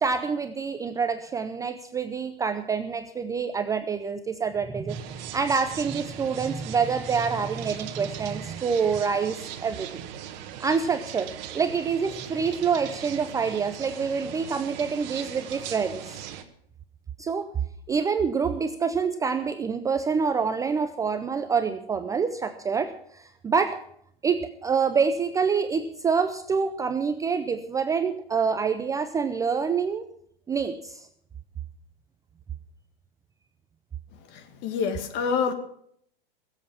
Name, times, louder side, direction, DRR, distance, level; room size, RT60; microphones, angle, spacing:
voice 1, 0.0-9.9 10.6-11.3 11.5-16.2 17.2-17.5 17.9-23.8 24.2-30.1 30.5-31.1, right 5 dB, 10° right, 9 dB, 0.5 m, -26 dB
sound 1, 4.9-16.4, right 10 dB, 50° right, 1.5 m, -39 dB
voice 2, 34.3-35.5, left 6 dB, 40° left, 7 dB, 2.0 m, -27 dB
20.5 x 7.8 x 5.6 m, 0.67 s
hypercardioid pair, 120°, 29 cm